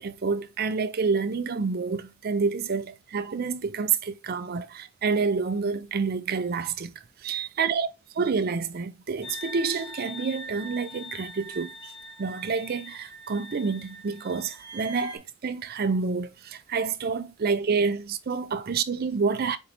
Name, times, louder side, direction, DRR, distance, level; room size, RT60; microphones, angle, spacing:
voice 1, 0.0-7.9 8.1-11.9 12.2-19.6, right 5 dB, 45° right, 0.4 m, -28 dB
sound 1, 9.2-15.2, right 1 dB, 25° left, 1.2 m, -42 dB
4.5 x 2.8 x 3.9 m
head